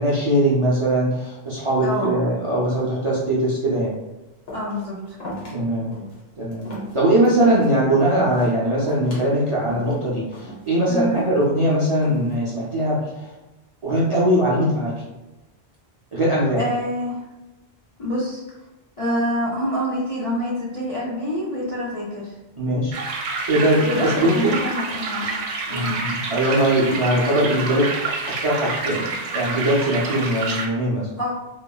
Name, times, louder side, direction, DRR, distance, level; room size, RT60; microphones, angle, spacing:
voice 1, 0.0-3.9 5.5-5.9 6.4-6.7 6.9-13.3 13.8-14.9 16.1-16.6 22.6-23.0 23.5-24.6 25.7-27.9 28.3-31.1, right 1 dB, 50° right, -7 dB, 0.4 m, -21 dB
voice 2, 1.8-2.1 4.5-5.2 10.9-11.2 16.6-17.2 18.0-18.4 19.0-22.4 23.8-25.4 25.7-25.9 31.2-31.3, equal, 50° left, -6 dB, 0.4 m, -26 dB
sound 1, 4.5-4.8 5.2-5.6 5.9-6.2 6.5-7.7 8.1-8.5 8.9-9.3 9.7-10.0 10.3-10.7 11.1-11.6 12.0-12.4, equal, 70° left, 1.2 m, -36 dB
sound 2, 22.9-30.7, right 4 dB, 85° right, 0.8 m, -28 dB
2.8 x 2.5 x 2.2 m, 1.0 s
omnidirectional pair, 1.1 m